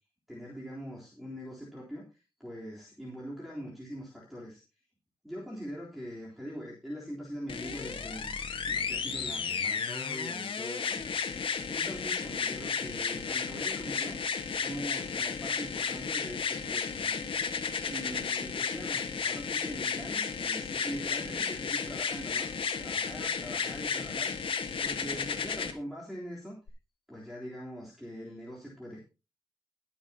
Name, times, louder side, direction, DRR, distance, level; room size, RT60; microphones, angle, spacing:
voice 1, 0.3-4.6 5.2-8.3 8.6-11.2 11.7-17.6 17.9-26.6 27.1-29.0, equal, ahead, -4 dB, 3.6 m, -43 dB
sound 1, 7.5-25.7 26.7-26.8, left 6 dB, 85° left, 1.6 m, -33 dB
21.5 x 7.3 x 2.9 m, 0.31 s
wide cardioid pair, 135°, 9 cm